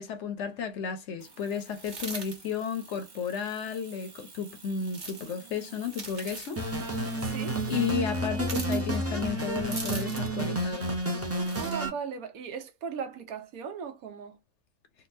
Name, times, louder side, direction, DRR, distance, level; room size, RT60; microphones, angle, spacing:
voice 1, 0.0-6.6 7.1-7.3 7.7-10.9, left 7 dB, 65° left, 0.8 m, -33 dB
sound 1, 1.2-7.9, right 4 dB, 50° right, 1.4 m, -52 dB
sound 2, 1.8-2.4 4.8-5.3 5.9-6.5 8.4-8.8 9.7-10.3 11.4-11.8, right 3 dB, 35° right, 1.1 m, -39 dB
sound 3, 6.6-11.9, right 1 dB, 20° right, 0.4 m, -30 dB
voice 2, 7.2-7.6 11.6-14.4, right 6 dB, 85° right, 1.2 m, -38 dB
3.8 x 2.3 x 2.6 m
omnidirectional pair, 1.5 m